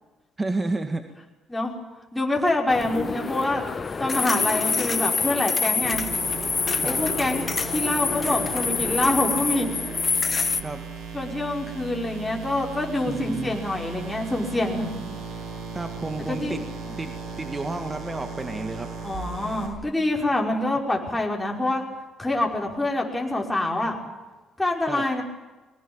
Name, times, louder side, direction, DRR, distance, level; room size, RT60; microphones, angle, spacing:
voice 1, 0.4-1.1 6.8-7.0 10.6-10.8 13.1-13.6 15.7-16.6 17.0-18.9 24.9-25.0, right 2 dB, 25° right, 7 dB, 2.0 m, -31 dB
voice 2, 2.1-3.6 4.0-6.0 6.8-9.7 11.1-14.9 16.3-16.6 19.0-21.8 22.2-24.0 24.6-25.2, left 2 dB, 10° left, 0 dB, 5.7 m, -26 dB
sound 1, 2.7-10.6, left 5 dB, 35° left, 1.4 m, -26 dB
sound 2, 5.9-19.7, right 5 dB, 70° right, 7.7 m, -37 dB
22.5 x 19.0 x 9.1 m, 1.2 s
supercardioid pair, 65°, 0 cm